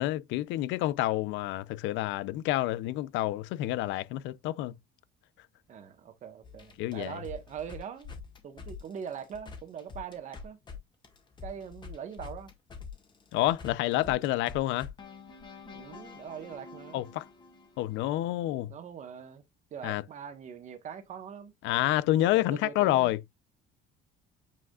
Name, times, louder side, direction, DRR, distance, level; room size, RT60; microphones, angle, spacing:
voice 1, 0.0-4.7 6.8-7.2 13.3-14.9 16.9-17.3 17.8-18.7 19.8-20.0 21.6-23.2, left 15 dB, 70° left, 0.5 m, -28 dB
voice 2, 5.7-8.1 8.4-10.6 11.4-12.5 13.9-14.2 15.6-17.0 18.4-19.4 19.7-21.8 22.2-23.1, right 8 dB, 35° right, 1.3 m, -42 dB
sound 1, 6.4-10.8 11.0-18.3, left 5 dB, 25° left, 1.7 m, -46 dB
8.6 x 4.9 x 2.4 m
cardioid pair, 175°, 20 cm